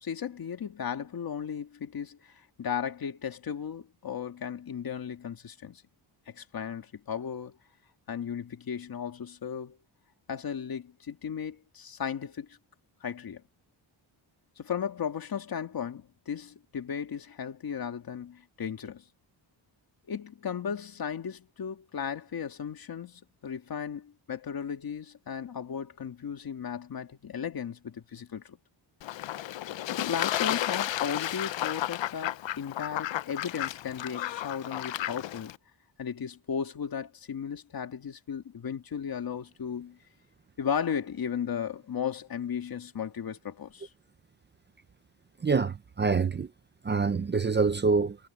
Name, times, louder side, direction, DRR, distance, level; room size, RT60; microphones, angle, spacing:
voice 1, 0.0-5.8 6.3-7.6 8.1-9.8 10.3-12.6 13.0-13.4 14.6-19.0 20.1-28.6 29.9-35.5 36.0-40.0 40.6-43.9, left 7 dB, 50° left, 2.1 m, -35 dB
Fowl / Bird / Water, 29.0-35.6, left 13 dB, 70° left, 0.7 m, -33 dB
voice 2, 45.4-46.5 46.8-48.2, right 4 dB, 25° right, 0.5 m, -26 dB
wide cardioid pair, 175°, 46 cm